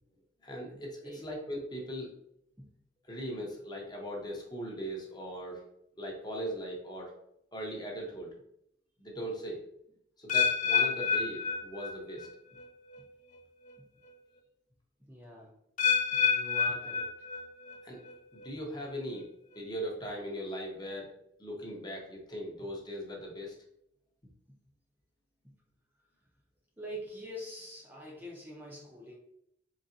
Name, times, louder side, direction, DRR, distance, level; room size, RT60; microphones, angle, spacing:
voice 1, 0.4-2.1 3.0-5.6 6.0-7.1 7.5-8.3 9.0-9.6 10.2-12.3 17.8-18.0 18.3-19.3 19.5-21.1 21.4-23.6, equal, 20° left, -1 dB, 0.8 m, -39 dB
sound 1, 10.3-12.3 12.6-13.0 13.7-13.8 15.8-17.7 18.1-18.5 19.1-19.2, left 6 dB, 40° left, 0.4 m, -29 dB
voice 2, 15.1-15.5 16.2-17.1 26.8-29.2, equal, 10° right, -3 dB, 0.6 m, -44 dB
4.0 x 3.2 x 2.6 m, 0.77 s
head